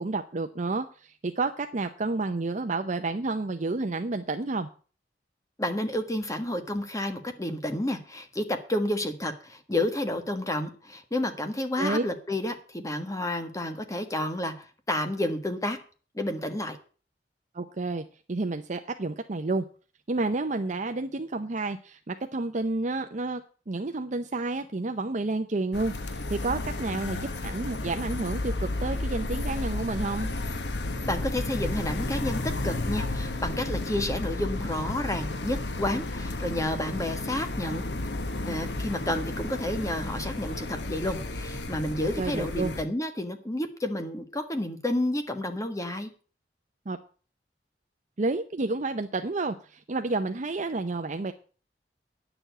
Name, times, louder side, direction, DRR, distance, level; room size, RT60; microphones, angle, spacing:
voice 1, 0.0-4.7 11.8-12.0 17.5-19.6 20.1-30.3 42.2-42.7 46.9-47.0 48.2-51.3, right 3 dB, 45° right, 7 dB, 0.7 m, -30 dB
voice 2, 5.6-15.8 16.1-16.8 31.1-37.8 38.5-46.1, left 1 dB, 20° left, 7 dB, 1.4 m, -30 dB
sound 1, 25.7-42.8, left 2 dB, 75° left, 1.2 m, -32 dB
10.0 x 7.0 x 8.0 m, 0.39 s
head